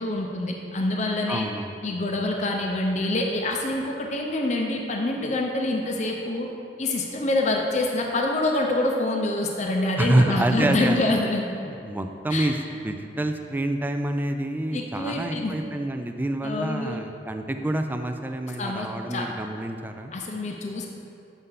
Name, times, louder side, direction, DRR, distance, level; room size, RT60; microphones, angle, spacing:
voice 1, 0.0-1.5 1.8-6.5 6.8-11.4 12.3-12.5 14.7-15.5 16.4-17.0 18.6-19.2 20.1-20.9, left 2 dB, 40° left, 1 dB, 0.6 m, -26 dB
voice 2, 1.3-1.8 10.0-11.1 11.6-12.6 12.8-20.1, right 1 dB, 10° right, 6 dB, 0.3 m, -27 dB
7.9 x 5.5 x 3.8 m, 2.7 s
head